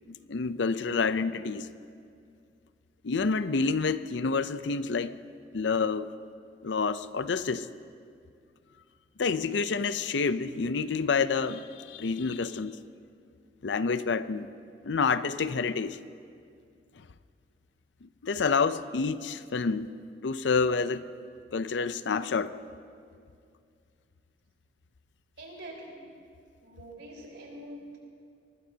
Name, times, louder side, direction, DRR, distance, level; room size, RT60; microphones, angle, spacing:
voice 1, 0.1-1.7 3.0-5.1 5.5-6.1 6.6-7.7 9.2-12.8 13.6-14.5 14.8-16.0 18.0-19.9 20.2-21.1 21.5-22.5, left 4 dB, 90° left, 0.6 m, -28 dB
voice 2, 25.4-26.0 26.6-28.0, right 1 dB, 85° right, 4.4 m, -44 dB
24.0 x 20.0 x 2.8 m
head